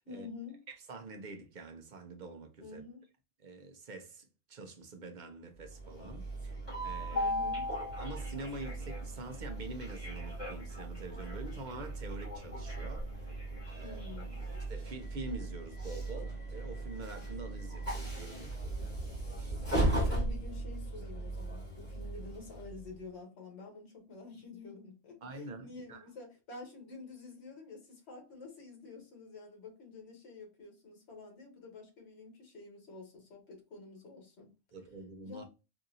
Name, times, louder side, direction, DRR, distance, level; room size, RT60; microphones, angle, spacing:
voice 1, 0.0-0.6 2.6-3.0 7.1-7.7 13.8-14.5 20.0-34.5 35.2-35.4, left 4 dB, 65° left, 1.4 m, -49 dB
voice 2, 0.7-2.8 3.4-7.3 8.0-13.4 13.7-14.0 14.7-19.9 25.2-26.1 34.7-35.4, right 3 dB, 50° right, 0.7 m, -46 dB
Train, 5.7-22.9, right 1 dB, 20° left, 2.2 m, -37 dB
3.9 x 2.7 x 2.6 m
omnidirectional pair, 1.2 m